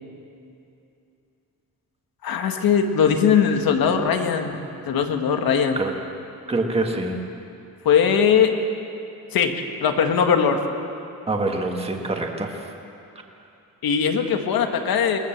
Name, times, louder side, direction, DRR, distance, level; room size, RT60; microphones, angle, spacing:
voice 1, 2.2-5.8 7.8-8.5 9.3-9.5 9.8-10.6 13.8-15.2, left 7 dB, 85° left, 4 dB, 1.9 m, -20 dB
voice 2, 6.5-7.2 11.3-12.6, right 2 dB, 15° right, 2 dB, 1.7 m, -25 dB
21.5 x 20.0 x 7.5 m, 2.7 s
wide cardioid pair, 170°, 34 cm